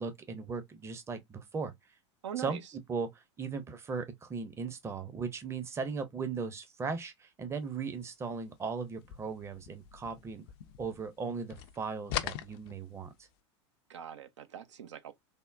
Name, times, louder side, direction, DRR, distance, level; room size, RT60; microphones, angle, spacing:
voice 1, 0.0-1.7 2.4-2.6 2.9-10.4 10.8-13.1, right 5 dB, 15° right, 0.6 m, -37 dB
voice 2, 2.2-2.7 13.9-15.1, right 10 dB, 75° right, 0.5 m, -42 dB
sound 1, 9.0-11.2 11.5-13.3, left 12 dB, 55° left, 0.4 m, -41 dB
3.5 x 2.1 x 2.4 m
hypercardioid pair, 90°, 15 cm